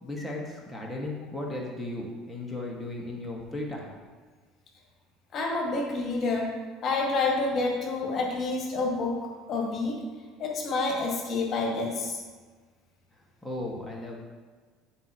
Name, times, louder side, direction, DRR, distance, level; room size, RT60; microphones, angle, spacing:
voice 1, 0.0-3.9 13.4-14.2, left 1 dB, 5° left, -3 dB, 1.9 m, -36 dB
voice 2, 5.3-6.5 6.8-9.2 9.5-10.0 10.4-12.2, left 3 dB, 45° left, -1 dB, 2.0 m, -28 dB
12.5 x 5.1 x 3.1 m, 1.4 s
hypercardioid pair, 65°, 0 cm